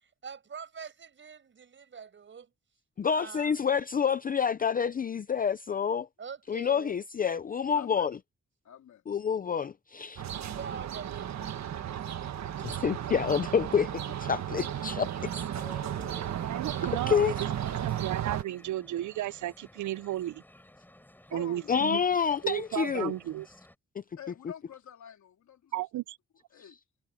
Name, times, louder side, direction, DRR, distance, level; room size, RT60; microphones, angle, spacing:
voice 1, 0.2-2.5 3.0-3.6 6.2-6.9 10.3-11.3, right 6 dB, 40° right, 6.4 m, -44 dB
voice 2, 3.0-6.1 6.5-8.1 9.1-10.2 12.6-15.3 16.8-17.3 21.7-23.1 24.0-24.1, left 7 dB, 30° left, 0.5 m, -28 dB
voice 3, 7.7-8.1 8.6-9.0 12.6-12.9 21.3-21.7 24.2-25.8 26.5-26.8, left 9 dB, 80° left, 3.4 m, -48 dB
sound 1, 10.2-18.4, right 10 dB, 70° right, 1.5 m, -34 dB
sound 2, 14.9-23.8, left 1 dB, 5° left, 7.9 m, -54 dB
voice 4, 16.3-17.3 17.8-20.4 21.3-22.0 22.4-23.5 25.7-26.2, right 14 dB, 85° right, 0.5 m, -34 dB
wide cardioid pair, 170°, 29 cm